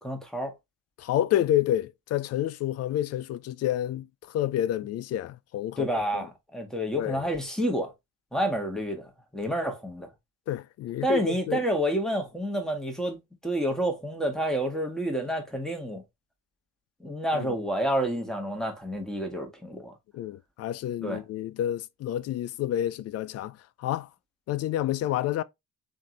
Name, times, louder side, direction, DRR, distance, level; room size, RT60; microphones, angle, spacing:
voice 1, 0.0-0.5 5.8-7.9 8.3-10.1 11.0-13.2 13.4-16.0 17.0-19.9 21.0-21.2, right 1 dB, ahead, 1.6 m, -29 dB
voice 2, 1.0-4.1 4.3-5.9 6.1-6.2 7.0-7.2 10.5-11.6 17.3-17.5 20.1-24.1 24.5-25.4, left 12 dB, 40° left, 0.4 m, -29 dB
3.6 x 3.5 x 2.9 m
figure-of-eight pair, 45°, 42 cm